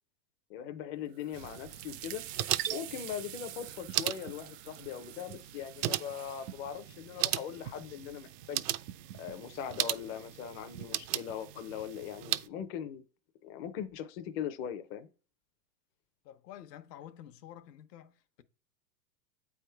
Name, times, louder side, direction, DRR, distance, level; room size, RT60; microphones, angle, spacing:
voice 1, 0.5-2.2 2.7-8.7 9.2-13.0 13.4-15.1, left 9 dB, 25° left, 0.5 m, -40 dB
sound 1, 1.1-6.6, right 14 dB, 35° right, 0.4 m, -48 dB
sound 2, 1.3-12.5, right 14 dB, 75° right, 0.6 m, -37 dB
voice 2, 2.7-3.0 16.2-18.4, left 11 dB, 75° left, 0.9 m, -50 dB
7.9 x 3.6 x 4.4 m
hypercardioid pair, 130°, 49 cm